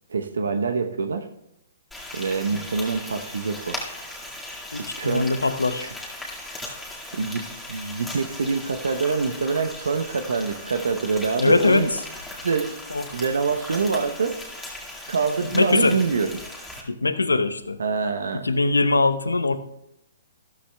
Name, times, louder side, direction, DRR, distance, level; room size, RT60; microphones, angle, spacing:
voice 1, 0.1-1.3 2.1-3.8 4.8-5.3 7.1-11.9 12.4-12.8 13.1-14.4 15.1-16.4 17.8-18.5, right 4 dB, 70° right, 7 dB, 0.9 m, -25 dB
Frying (food), 1.9-16.8, left 1 dB, 5° left, 2.1 m, -38 dB
voice 2, 4.7-5.9 11.4-12.0 12.9-13.0 15.5-16.0 16.9-17.8 18.3-19.6, left 3 dB, 85° left, 11 dB, 0.8 m, -22 dB
14.0 x 13.0 x 2.3 m, 0.79 s
figure-of-eight pair, 125°, 0 cm